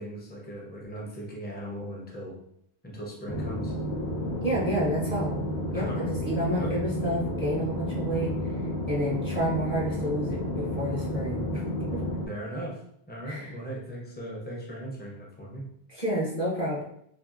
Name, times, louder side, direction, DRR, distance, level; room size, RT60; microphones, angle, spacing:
voice 1, 0.0-2.4 2.8-3.7 5.7-6.1 6.6-6.9 12.3-12.8 13.1-15.6, right 1 dB, 15° left, -3 dB, 0.4 m, -38 dB
sound 1, 3.3-12.3, equal, 75° left, 0.9 m, -31 dB
voice 2, 4.4-5.4 5.7-8.6 8.9-11.6 11.9-12.0 13.3-13.5 15.9-16.8, equal, 40° left, -6 dB, 0.8 m, -30 dB
2.6 x 2.5 x 2.4 m, 0.72 s
omnidirectional pair, 1.1 m